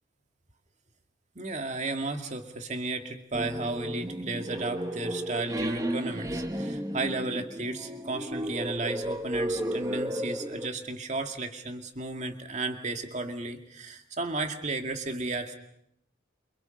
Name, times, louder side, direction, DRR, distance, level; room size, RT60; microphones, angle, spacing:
voice 1, 1.4-15.5, right 2 dB, 35° right, 5 dB, 2.3 m, -34 dB
sound 1, 3.3-10.7, right 1 dB, 15° right, 1.3 m, -33 dB
28.5 x 28.0 x 5.3 m, 0.76 s
head